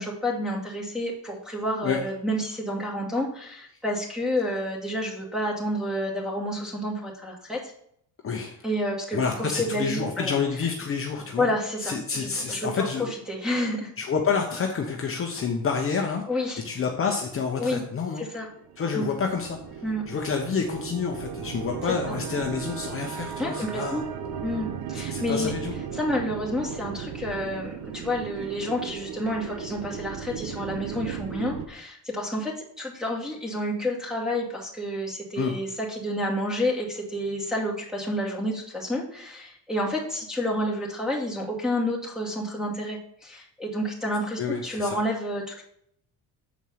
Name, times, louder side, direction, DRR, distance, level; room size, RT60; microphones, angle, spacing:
voice 1, 0.0-7.7 8.6-10.4 11.4-13.9 16.3-16.6 17.6-17.8 18.2-18.5 18.9-19.1 19.8-20.0 23.4-24.0 24.4-25.5 25.9-45.6, equal, ahead, -2 dB, 2.3 m, -29 dB
voice 2, 8.2-8.6 9.1-11.5 11.8-13.1 14.0-16.2 16.6-18.2 18.8-24.0 25.1-25.7 35.4-35.5 44.4-45.0, left 5 dB, 35° left, 1 dB, 1.0 m, -28 dB
sound 1, 18.3-31.7, right 7 dB, 70° right, 1.0 m, -36 dB
7.3 x 4.5 x 5.7 m, 0.69 s
cardioid pair, 120°, 37 cm